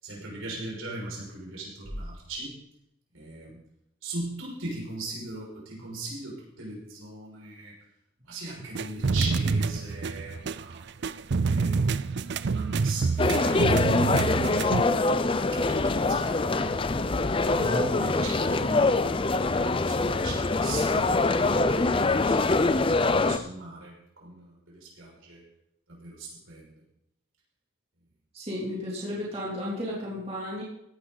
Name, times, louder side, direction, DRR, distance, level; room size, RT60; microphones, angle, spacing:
voice 1, 0.0-2.6 3.1-3.6 4.0-7.8 8.3-10.8 11.5-12.2 12.5-13.6 14.1-15.0 15.5-16.9 17.4-22.7 23.0-25.4 25.9-26.7, right 2 dB, 75° right, -4 dB, 5.9 m, -39 dB
sound 1, 8.7-14.8, right 4 dB, 55° right, 0.4 m, -27 dB
sound 2, 13.2-23.4, left 3 dB, 25° left, 0.5 m, -24 dB
voice 2, 28.3-30.6, left 1 dB, 30° right, -6 dB, 3.0 m, -33 dB
16.5 x 11.0 x 4.0 m, 0.83 s
head